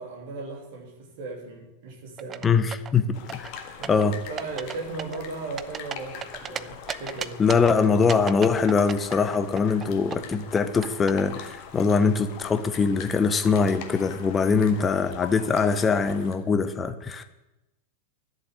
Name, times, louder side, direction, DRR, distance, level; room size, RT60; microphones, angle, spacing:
voice 1, 0.0-2.5 3.8-7.4, right 3 dB, 50° right, 2 dB, 3.1 m, -37 dB
sound 1, 2.2-2.9 3.3-4.1 4.4-4.7 5.0-6.6 6.9-7.7 8.1-9.9 10.1-11.1, right 8 dB, 25° right, 0.5 m, -34 dB
voice 2, 2.4-3.0 3.3-3.5 3.9-4.1 7.4-17.2, left 5 dB, 20° left, 11 dB, 1.0 m, -22 dB
sound 2, 3.1-16.3, left 7 dB, 45° left, 1.6 m, -43 dB
11.5 x 7.0 x 9.5 m, 0.98 s
figure-of-eight pair, 90°, 0 cm